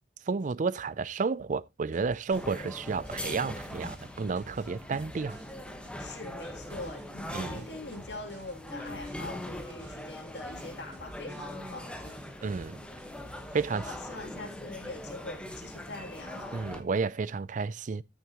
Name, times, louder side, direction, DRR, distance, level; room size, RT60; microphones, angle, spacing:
voice 1, 0.3-5.4 7.3-7.7 12.4-12.8 13.5-13.9 16.5-18.0, right 4 dB, 45° right, 0.4 m, -31 dB
sound 1, 1.9-12.7 13.0-13.9, right 1 dB, 75° right, 2.5 m, -53 dB
sound 2, 2.3-16.8, left 1 dB, 5° left, 1.2 m, -41 dB
voice 2, 6.0-12.2 13.8-16.6, left 2 dB, 70° left, 2.9 m, -43 dB
13.5 x 6.5 x 2.9 m
head